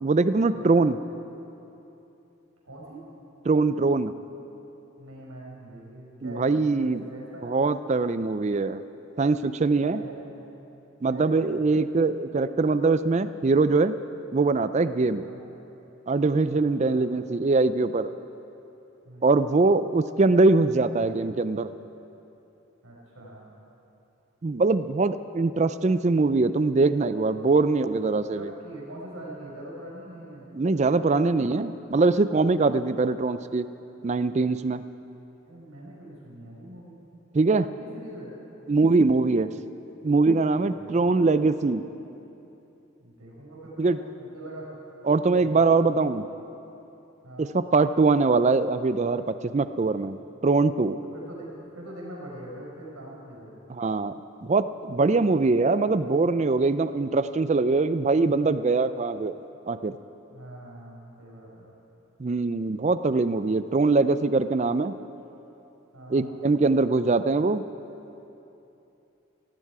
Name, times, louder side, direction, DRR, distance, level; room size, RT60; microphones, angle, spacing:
voice 1, 0.0-1.0 3.4-4.1 6.2-7.0 7.4-8.8 9.2-10.0 11.0-14.0 14.3-15.2 16.1-18.1 19.2-21.7 24.4-28.5 30.5-33.7 34.0-34.9 37.3-37.7 38.7-39.6 40.0-41.8 43.8-44.0 45.0-46.2 47.4-51.0 53.7-59.4 59.7-60.0 62.2-65.0 66.1-67.7, right 3 dB, 30° right, 13 dB, 0.4 m, -22 dB
voice 2, 2.6-3.0 5.0-7.5 9.9-10.2 11.1-11.7 15.2-15.4 16.5-17.0 19.0-19.4 22.8-23.4 28.3-30.4 35.4-37.0 37.6-38.3 40.6-41.4 43.0-44.7 45.4-45.8 47.2-47.5 51.1-53.5 60.3-61.7 65.9-66.3, right 1 dB, 85° right, -4 dB, 4.9 m, -43 dB
18.0 x 16.0 x 4.8 m, 2.9 s
head